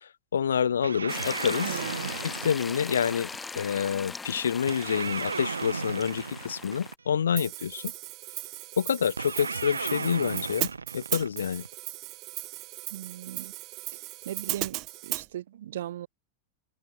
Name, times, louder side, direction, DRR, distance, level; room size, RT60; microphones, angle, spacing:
voice 1, 0.0-1.8 2.2-3.3 3.6-7.9 8.8-10.7 10.9-11.6, left 7 dB, 70° left, 3.7 m, -28 dB
sound 1, 0.8-3.4 4.7-7.2 9.2-11.7, right 4 dB, 75° right, 1.9 m, -35 dB
sound 2, 1.1-6.9, left 4 dB, 15° left, 7.3 m, -39 dB
voice 2, 1.6-2.1 12.9-13.5 14.3-16.1, right 12 dB, 60° right, 2.2 m, -38 dB
Hi-hat, 7.4-15.3, right 21 dB, 40° right, 1.6 m, -37 dB
figure-of-eight pair, 90°, 0 cm